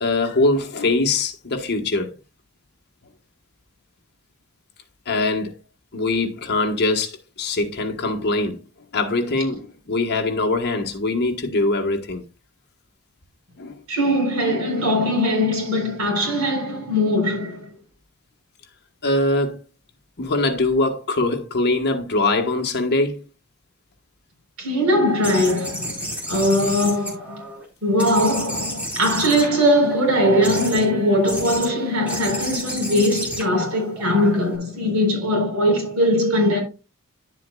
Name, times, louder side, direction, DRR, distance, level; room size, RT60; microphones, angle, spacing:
voice 1, 0.0-2.1 5.1-5.5 5.9-8.6 8.9-12.2 13.6-13.7 19.0-19.6 20.2-23.2, left 2 dB, 50° left, 1.4 m, -22 dB
voice 2, 13.9-17.7 24.6-26.0 26.3-27.5 27.8-36.6, equal, 70° right, 4.2 m, -20 dB
sound 1, 25.2-27.6 28.0-29.9 30.4-30.9 31.2-31.7 32.1-34.6, equal, 5° right, 4.2 m, -31 dB
11.0 x 7.5 x 2.4 m
head